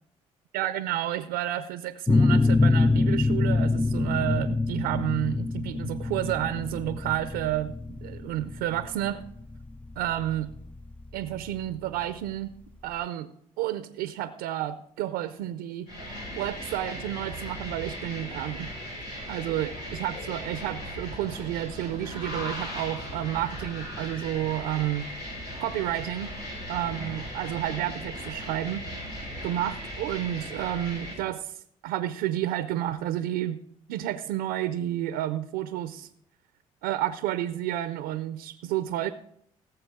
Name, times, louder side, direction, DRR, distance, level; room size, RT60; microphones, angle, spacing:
voice 1, 0.5-7.7 8.0-9.2 10.0-10.5 11.1-12.6 12.8-15.9 16.4-18.7 19.3-25.1 25.6-26.3 26.7-28.9 29.4-33.6 33.9-36.1 36.8-39.1, right 13 dB, 80° right, 13 dB, 0.5 m, -30 dB
sound 1, 2.1-11.5, left 3 dB, 10° left, 0.3 m, -25 dB
sound 2, 15.9-31.1, equal, 80° left, 4.8 m, -38 dB
17.0 x 7.3 x 3.6 m, 0.67 s
hypercardioid pair, 55°, 16 cm